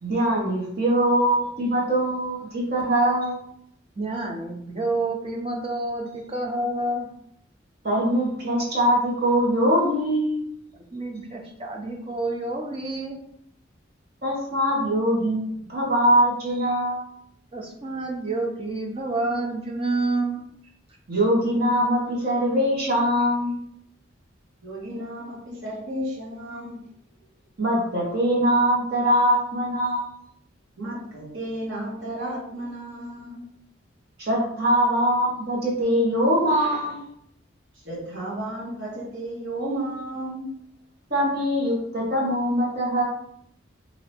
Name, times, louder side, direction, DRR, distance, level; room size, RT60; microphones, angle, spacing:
voice 1, 0.0-3.4 7.8-10.4 14.2-17.0 21.1-23.6 27.6-30.1 34.2-37.1 41.1-43.0, equal, 50° right, -4 dB, 1.4 m, -22 dB
voice 2, 4.0-7.1 10.9-13.2 17.5-20.4, right 2 dB, 30° right, 1 dB, 0.6 m, -28 dB
voice 3, 24.6-26.8 30.8-33.4 37.7-40.5, right 1 dB, 80° right, -4 dB, 1.5 m, -33 dB
2.9 x 2.9 x 4.3 m, 0.70 s
head